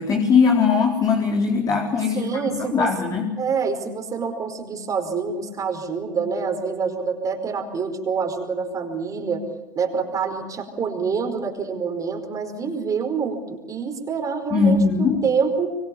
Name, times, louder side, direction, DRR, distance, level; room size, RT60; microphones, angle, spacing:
voice 1, 0.0-2.3 2.7-3.3 14.5-15.2, left 5 dB, 35° left, 1 dB, 4.2 m, -19 dB
voice 2, 2.1-2.9 3.4-9.4 9.7-15.7, right 5 dB, 30° right, 4 dB, 5.0 m, -26 dB
25.0 x 24.5 x 7.1 m, 1.1 s
hypercardioid pair, 85°, 11 cm